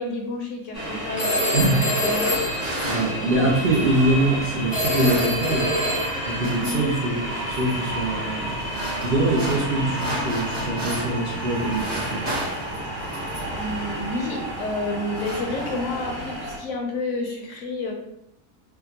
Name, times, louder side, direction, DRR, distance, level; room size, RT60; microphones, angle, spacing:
voice 1, 0.0-2.4 2.9-3.1 6.6-6.8 9.0-9.3 13.1-17.9, left 2 dB, 65° left, 1 dB, 0.8 m, -31 dB
sound 1, 0.7-16.6, equal, 30° right, 1.0 m, -31 dB
Telephone, 1.2-3.5 4.7-6.4, left 1 dB, 20° left, 0.7 m, -26 dB
sound 2, 2.0-4.0 4.7-5.7 6.0-6.9 7.3-7.7 8.4-11.3 11.5-13.6 14.4-14.6 14.9-16.0, right 1 dB, 45° right, 1.7 m, -35 dB
voice 2, 2.8-5.7 6.3-8.6 8.9-12.3, right 2 dB, 90° right, -3 dB, 0.4 m, -23 dB
3.6 x 2.3 x 2.8 m, 0.81 s
omnidirectional pair, 1.6 m